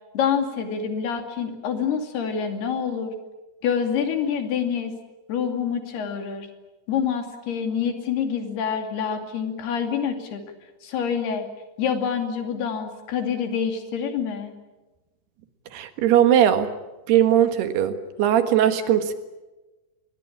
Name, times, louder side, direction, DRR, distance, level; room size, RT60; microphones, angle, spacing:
voice 1, 0.1-3.1 3.6-4.9 5.3-6.5 6.9-10.4 10.8-11.5 11.8-14.5, left 7 dB, 75° left, 5 dB, 4.6 m, -26 dB
voice 2, 15.7-16.7 17.1-19.1, right 10 dB, 80° right, 9 dB, 3.6 m, -19 dB
26.0 x 21.0 x 8.8 m, 1.1 s
omnidirectional pair, 4.7 m